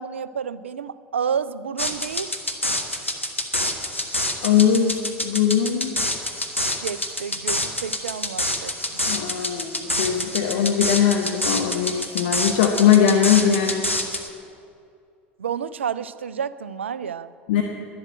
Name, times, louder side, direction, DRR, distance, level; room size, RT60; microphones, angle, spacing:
voice 1, 0.0-2.3 6.8-9.0 15.4-17.3, right 7 dB, 70° right, 16 dB, 0.4 m, -30 dB
sound 1, 1.8-14.3, left 1 dB, 90° left, 1.1 m, -27 dB
voice 2, 4.4-5.9 9.1-13.8 17.5-17.6, left 8 dB, 60° left, 3 dB, 1.0 m, -20 dB
11.5 x 11.0 x 7.8 m, 2.4 s
figure-of-eight pair, 75°, 7 cm